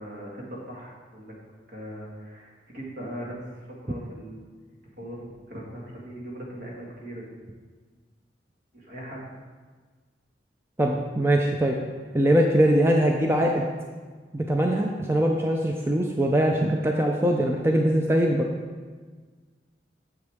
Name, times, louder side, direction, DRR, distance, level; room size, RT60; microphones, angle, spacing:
voice 1, 0.0-1.4 1.7-4.4 4.8-7.3 8.7-9.2, equal, 60° right, -3 dB, 1.9 m, -40 dB
voice 2, 10.8-11.8 12.1-13.7 14.3-18.5, right 1 dB, 15° right, 1 dB, 0.5 m, -22 dB
7.9 x 7.3 x 3.5 m, 1.5 s
head